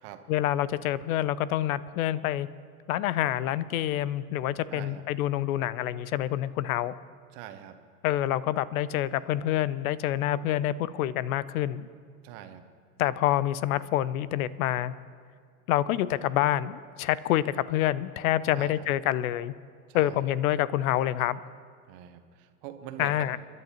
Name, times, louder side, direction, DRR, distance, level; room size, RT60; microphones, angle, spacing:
voice 1, 0.3-2.5 2.9-6.9 8.0-11.9 13.0-14.9 15.7-19.5 19.9-21.4 23.0-23.4, left 13 dB, 70° left, 18 dB, 0.6 m, -27 dB
voice 2, 4.7-5.0 7.3-7.8 12.2-12.6 18.5-18.8 19.9-20.2 21.9-23.3, right 11 dB, 55° right, 8 dB, 1.2 m, -43 dB
29.5 x 11.0 x 2.9 m, 2.1 s
hypercardioid pair, 85°, 43 cm